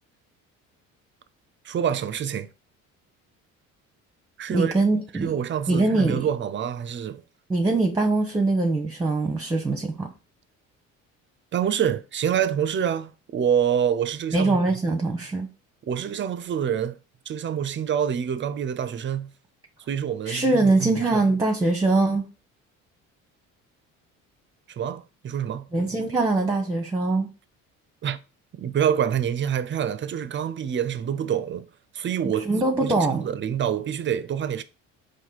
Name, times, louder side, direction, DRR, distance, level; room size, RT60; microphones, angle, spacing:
voice 1, 1.6-2.5 4.4-4.7 5.1-7.2 11.5-14.6 15.9-17.0 17.3-19.3 19.9-21.2 24.7-25.7 28.0-28.2 28.5-31.7 31.9-32.5 32.8-34.6, right 8 dB, 30° right, 0.5 m, -26 dB
voice 2, 4.5-5.3 5.7-6.2 7.5-10.1 14.3-15.5 20.3-22.2 25.7-27.3 32.5-33.2, right 2 dB, 10° right, 0.8 m, -22 dB
4.3 x 2.7 x 3.9 m
hypercardioid pair, 60°, 38 cm